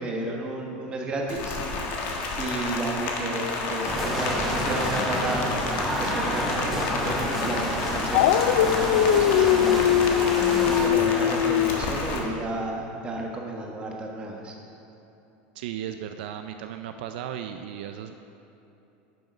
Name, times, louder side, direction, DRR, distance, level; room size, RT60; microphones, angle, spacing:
voice 1, 0.0-1.6 2.4-5.5 6.0-10.0 10.6-14.5, right 2 dB, 20° right, -1 dB, 1.3 m, -32 dB
Rain, 1.3-12.2, left 3 dB, 40° left, 1.3 m, -31 dB
sound 1, 3.8-10.9, equal, ahead, 1.1 m, -29 dB
Dog, 8.1-11.8, left 11 dB, 80° left, 0.4 m, -21 dB
voice 2, 15.5-18.1, right 10 dB, 70° right, 7 dB, 0.5 m, -35 dB
10.5 x 6.9 x 5.2 m, 2.9 s
supercardioid pair, 160°, 5 cm